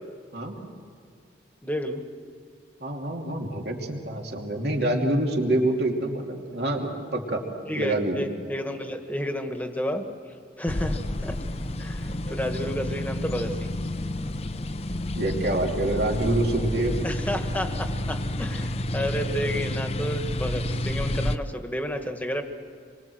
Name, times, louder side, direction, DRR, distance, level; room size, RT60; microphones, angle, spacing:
voice 1, 1.6-2.0 7.7-10.1 10.6-11.4 11.8-13.7 17.0-22.4, equal, 10° left, 5 dB, 1.6 m, -31 dB
voice 2, 2.8-7.4 7.7-8.2 15.2-17.0, right 1 dB, 60° right, 1 dB, 2.8 m, -26 dB
sound 1, 10.7-21.4, left 1 dB, 35° left, 0.7 m, -30 dB
28.0 x 23.5 x 7.9 m, 2.3 s
head